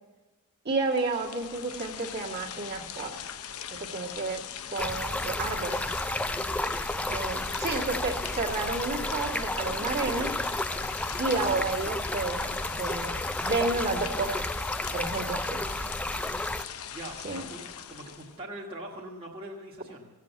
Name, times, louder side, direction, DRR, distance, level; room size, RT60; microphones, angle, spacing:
sound 1, 0.7-18.4, left 8 dB, 75° left, 0.7 m, -41 dB
voice 1, 0.7-3.1 3.7-4.4 4.7-5.9 7.1-10.3 11.2-14.5 14.9-15.6 17.2-17.4, right 3 dB, 45° right, -3 dB, 1.8 m, -31 dB
Stream, 4.8-16.6, left 1 dB, 5° left, 0.3 m, -32 dB
voice 2, 16.9-20.1, right 1 dB, 25° right, -4 dB, 1.4 m, -42 dB
16.0 x 7.5 x 8.2 m, 1.3 s
head